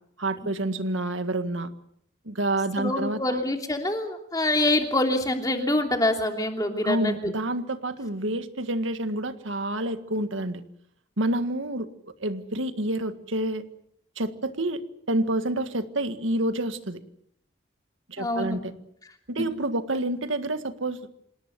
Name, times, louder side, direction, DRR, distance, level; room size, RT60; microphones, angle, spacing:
voice 1, 0.2-1.7 2.3-3.4 6.8-10.6 11.2-11.9 12.2-13.6 14.2-14.8 15.1-17.0 18.1-18.7 19.3-21.0, right 1 dB, 75° right, 10 dB, 1.8 m, -28 dB
voice 2, 2.8-7.3 18.2-18.6, left 1 dB, 20° left, 4 dB, 2.9 m, -25 dB
27.0 x 18.5 x 7.6 m, 0.73 s
head